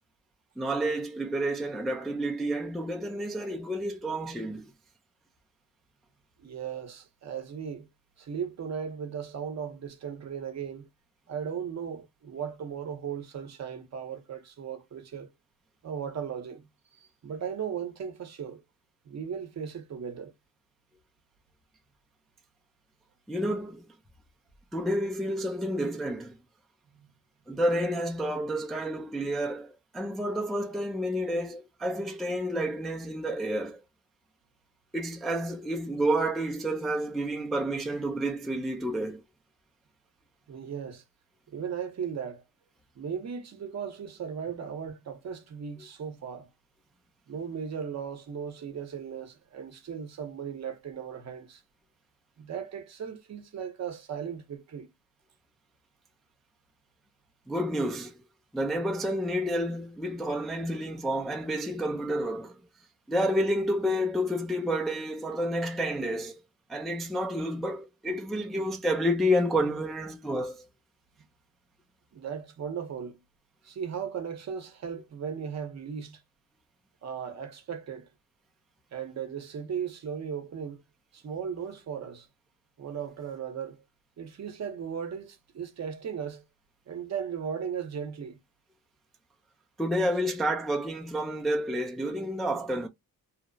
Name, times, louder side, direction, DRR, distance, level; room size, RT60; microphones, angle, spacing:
voice 1, 0.6-4.7 23.3-23.9 24.7-26.4 27.5-33.8 34.9-39.2 57.5-58.2 58.5-62.6 63.1-66.4 66.7-70.7 89.8-92.9, equal, ahead, 0.3 m, -30 dB
voice 2, 6.4-7.9 8.2-10.9 11.3-15.3 15.8-16.7 17.0-18.6 19.1-20.3 26.9-27.1 40.5-41.0 41.5-42.4 43.0-46.5 47.3-51.6 52.4-54.9 72.1-73.2 73.6-76.2 77.0-78.1 78.9-80.8 81.1-82.3 82.8-83.8 84.2-86.4 86.9-88.4, right 7 dB, 50° right, 0.7 m, -37 dB
2.8 x 2.0 x 2.5 m
wide cardioid pair, 155°, 34 cm